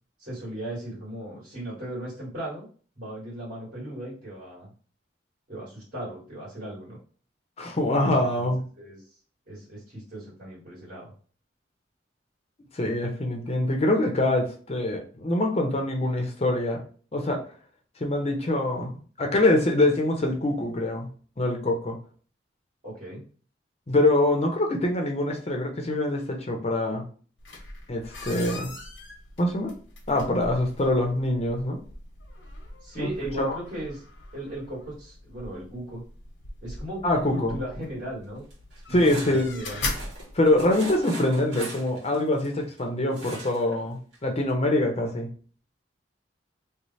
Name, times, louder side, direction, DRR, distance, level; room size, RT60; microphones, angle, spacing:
voice 1, 0.2-2.7 3.0-4.7 5.5-7.0 8.0-8.5 8.8-9.1 9.5-11.1 22.8-23.2 32.8-34.1 34.3-36.0 36.6-38.4 38.9-39.8, right 1 dB, 50° right, -8 dB, 1.7 m, -37 dB
voice 2, 7.6-8.6 12.7-16.8 17.1-17.4 18.0-21.1 21.4-22.0 23.9-27.1 27.9-28.7 29.4-29.7 30.1-31.8 33.0-33.1 33.4-33.6 37.0-37.6 38.9-39.5 40.3-45.3, left 1 dB, 35° left, 2 dB, 0.6 m, -24 dB
sound 1, 27.4-41.0, left 2 dB, 85° left, 1.0 m, -40 dB
sound 2, 38.5-42.8 43.1-43.8 44.1-44.2 44.5-44.6, right 2 dB, 70° right, 1.5 m, -41 dB
3.1 x 2.0 x 4.0 m, 0.42 s
head